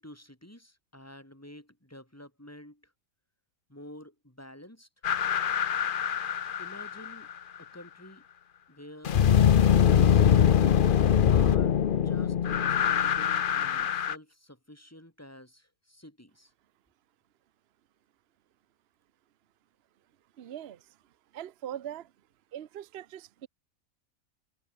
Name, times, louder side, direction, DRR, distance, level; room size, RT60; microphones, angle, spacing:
voice 1, 0.0-2.8 3.7-4.9 6.6-7.3 7.6-8.2 8.7-9.2 9.5-10.3 11.3-16.5, left 1 dB, 10° left, 5.2 m, -49 dB
sound 1, 5.0-7.3 9.0-14.1, left 8 dB, 50° left, 0.7 m, -23 dB
voice 2, 20.4-20.8 21.3-22.1 22.5-23.5, right 10 dB, 55° right, 0.9 m, -41 dB
omnidirectional pair, 1.4 m